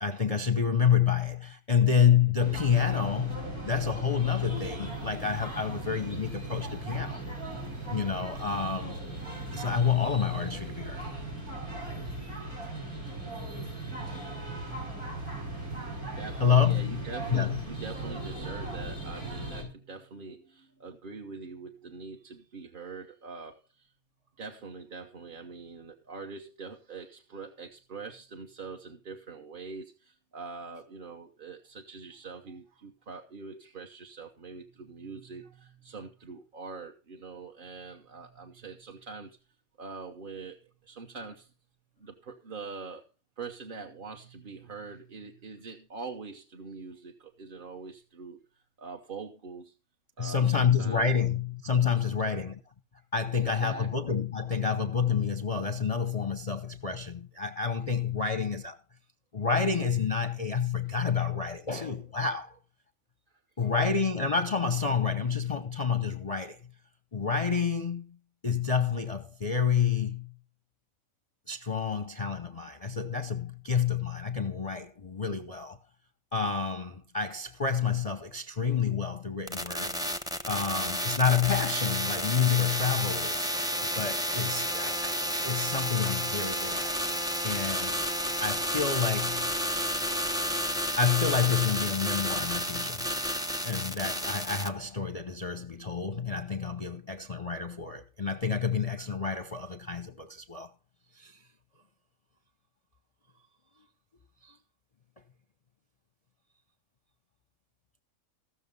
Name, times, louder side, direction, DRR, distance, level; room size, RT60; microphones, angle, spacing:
voice 1, 0.0-7.2 7.9-9.0 9.5-11.0 16.4-17.0 17.3-17.6 50.2-52.6 53.1-58.8 59.3-62.6 63.6-66.6 67.1-68.1 68.4-70.3 71.5-75.8 76.3-80.0 80.5-83.5 83.9-85.2 85.4-86.9 87.4-88.0 88.4-89.5 91.0-93.1 93.6-100.7 101.2-101.4 104.4-104.6, left 6 dB, 35° left, 0.7 m, -28 dB
sound 1, 2.4-19.6, right 2 dB, 80° right, 6.6 m, -38 dB
voice 2, 16.1-23.9 24.4-39.4 39.8-40.6 40.8-41.5 42.0-43.0 43.4-48.4 48.8-49.7 50.2-51.1 52.0-52.4 53.5-54.2 58.2-58.3 61.5-61.6 63.6-63.7, right 4 dB, 40° right, 1.1 m, -44 dB
sound 2, 79.5-94.7, equal, 5° right, 0.6 m, -31 dB
15.5 x 6.6 x 5.3 m
omnidirectional pair, 1.5 m